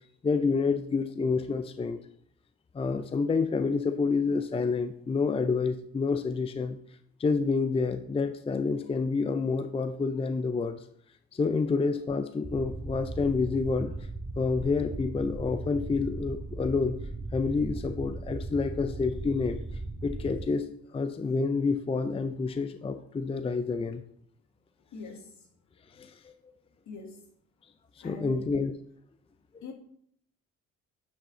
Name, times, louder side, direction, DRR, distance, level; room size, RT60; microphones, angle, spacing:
voice 1, 0.2-2.0 2.7-6.8 7.2-10.8 11.3-13.9 14.4-17.0 17.3-19.6 20.0-20.7 20.9-24.0 26.0-26.3 28.0-28.7, left 4 dB, 20° left, 9 dB, 0.5 m, -28 dB
sound 1, 12.4-20.4, right 2 dB, 25° right, 2.4 m, -37 dB
voice 2, 24.9-25.5 26.8-27.2 28.0-28.5 29.6-29.7, left 3 dB, 70° left, 3 dB, 1.8 m, -43 dB
9.1 x 4.9 x 3.8 m, 0.67 s
cardioid pair, 90°, 30 cm